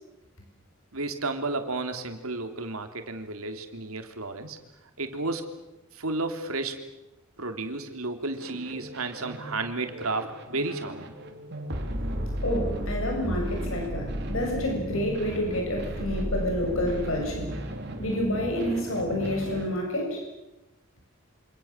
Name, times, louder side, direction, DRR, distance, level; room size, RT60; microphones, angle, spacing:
voice 1, 0.9-4.6 5.0-5.5 5.9-6.9 7.4-11.1, right 3 dB, 80° right, 6 dB, 3.3 m, -32 dB
sound 1, 8.4-19.7, equal, 50° right, 3.6 m, -34 dB
voice 2, 12.4-17.5 18.0-20.2, left 1 dB, 65° left, 1 dB, 7.3 m, -29 dB
27.5 x 26.5 x 7.4 m, 0.98 s
head